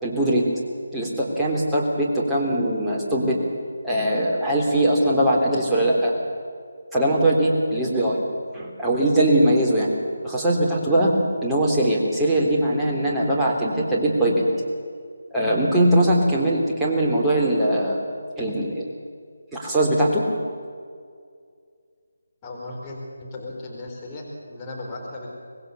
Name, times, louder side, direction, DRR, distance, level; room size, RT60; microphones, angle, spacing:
voice 1, 0.0-0.5 0.9-3.4 3.8-6.1 6.9-8.2 8.5-9.9 10.2-14.4 15.3-18.0 18.4-18.8 19.5-20.2, right 1 dB, 5° right, -6 dB, 3.5 m, -21 dB
voice 2, 22.4-25.3, left 2 dB, 20° left, -2 dB, 4.4 m, -36 dB
24.5 x 19.5 x 7.1 m, 2.1 s
figure-of-eight pair, 160°, 0 cm